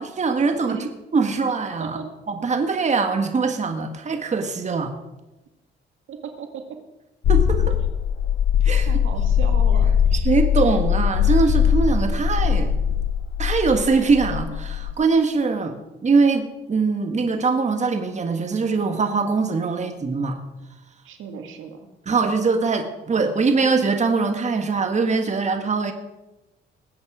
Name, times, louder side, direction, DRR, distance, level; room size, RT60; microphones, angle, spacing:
voice 1, 0.0-2.0 2.3-4.9 7.3-7.8 8.6-8.9 10.2-12.7 13.4-15.8 16.0-20.4 22.0-25.9, right 4 dB, 35° right, 6 dB, 1.7 m, -22 dB
voice 2, 6.1-6.5 8.9-9.9 21.0-21.8, right 6 dB, 80° right, 5 dB, 1.9 m, -35 dB
sound 1, 7.2-14.9, left 8 dB, 70° left, 1.0 m, -20 dB
20.0 x 8.7 x 5.0 m, 1.0 s
cardioid pair, 90°, 20 cm